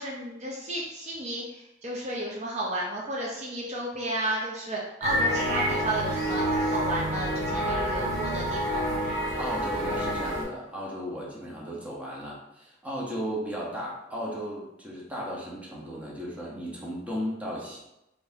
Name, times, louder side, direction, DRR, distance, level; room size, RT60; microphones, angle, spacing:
voice 1, 0.0-8.8, right 1 dB, 40° right, -4 dB, 0.6 m, -33 dB
sound 1, 5.0-10.4, equal, 60° right, 1.3 m, -28 dB
voice 2, 9.4-17.8, equal, 5° right, -5 dB, 0.9 m, -35 dB
4.0 x 3.3 x 2.7 m, 0.88 s
head